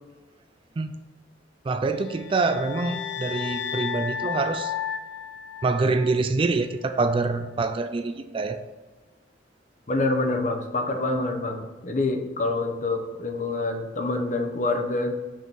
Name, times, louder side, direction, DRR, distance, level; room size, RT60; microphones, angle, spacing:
voice 1, 1.7-4.7 5.6-8.6, right 3 dB, 30° right, 9 dB, 0.3 m, -25 dB
sound 1, 2.0-6.3, left 8 dB, 70° left, 0.4 m, -33 dB
voice 2, 9.9-15.1, left 2 dB, 45° left, 5 dB, 0.8 m, -26 dB
6.2 x 3.5 x 6.0 m, 1.2 s
head